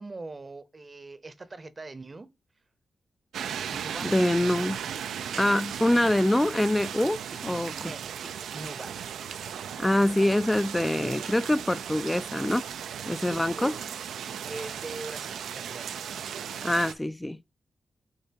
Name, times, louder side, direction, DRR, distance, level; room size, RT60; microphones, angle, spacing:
voice 1, 0.0-2.3 3.7-4.2 7.3-7.4 7.8-9.0 13.3-16.0, right 3 dB, 35° right, 0.7 m, -42 dB
sound 1, 3.3-16.9, right 8 dB, 85° right, 0.4 m, -36 dB
voice 2, 4.0-4.8 5.4-7.7 9.8-12.6 13.1-13.8 16.6-17.5, left 1 dB, 15° left, 0.3 m, -25 dB
6.7 x 2.7 x 2.8 m
cardioid pair, 55°, 0 cm